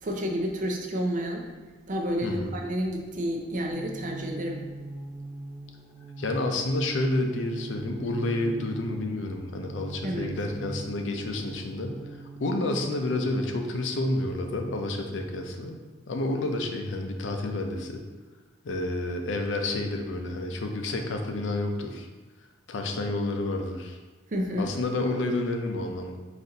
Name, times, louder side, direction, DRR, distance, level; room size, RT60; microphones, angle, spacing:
voice 1, 0.0-1.4 1.9-4.7 10.0-10.4 24.3-24.7, equal, 45° right, 1 dB, 0.5 m, -30 dB
voice 2, 2.2-2.5 6.2-12.0 12.4-15.8 16.1-18.0 18.6-22.1 22.7-24.0 24.6-26.2, left 2 dB, 85° left, 4 dB, 0.5 m, -29 dB
sound 1, 3.7-13.1, right 2 dB, 10° left, 0.8 m, -41 dB
4.1 x 2.5 x 3.9 m, 1.3 s
head